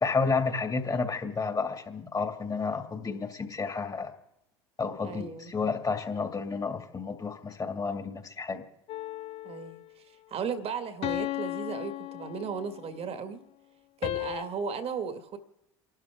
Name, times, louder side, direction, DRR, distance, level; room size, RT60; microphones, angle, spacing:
voice 1, 0.0-4.1 4.8-8.6, left 4 dB, 25° left, 6 dB, 2.4 m, -31 dB
voice 2, 5.0-5.5 9.4-10.0 10.3-13.4 14.0-15.4, right 6 dB, 45° right, 10 dB, 2.0 m, -35 dB
sound 1, 8.9-9.9 11.0-12.9 14.0-14.4, left 16 dB, 45° left, 0.4 m, -35 dB
28.5 x 12.5 x 3.7 m, 0.86 s
hypercardioid pair, 70°, 14 cm